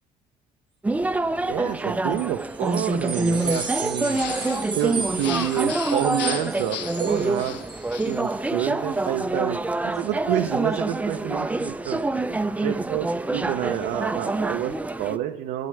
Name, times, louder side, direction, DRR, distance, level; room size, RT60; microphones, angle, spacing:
sound 1, 0.8-15.2, right 2 dB, 10° right, 0.3 m, -26 dB
voice 1, 1.4-4.2 4.8-7.6 8.1-12.0 12.6-15.7, right 12 dB, 85° right, 5 dB, 0.5 m, -28 dB
sound 2, 2.1-8.3, right 5 dB, 30° right, 0.7 m, -35 dB
sound 3, 3.3-8.2, left 11 dB, 90° left, 0.6 m, -37 dB
9.2 x 7.6 x 3.2 m, 0.87 s
cardioid pair, 110°, 17 cm